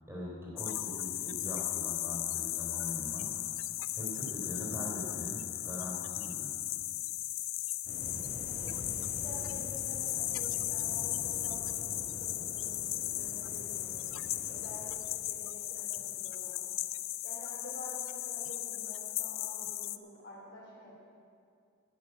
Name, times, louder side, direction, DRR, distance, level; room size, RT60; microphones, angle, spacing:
voice 1, 0.1-3.5 3.9-6.5, equal, 10° right, -5 dB, 3.6 m, -42 dB
sound 1, 0.6-20.0, left 16 dB, 75° left, 0.5 m, -36 dB
Waves surf, 7.8-15.0, equal, 55° right, 3.0 m, -46 dB
voice 2, 8.4-9.0 9.2-13.9 14.5-16.7 17.2-20.9, equal, 55° left, -4 dB, 3.9 m, -49 dB
12.5 x 8.4 x 8.8 m, 2.3 s
head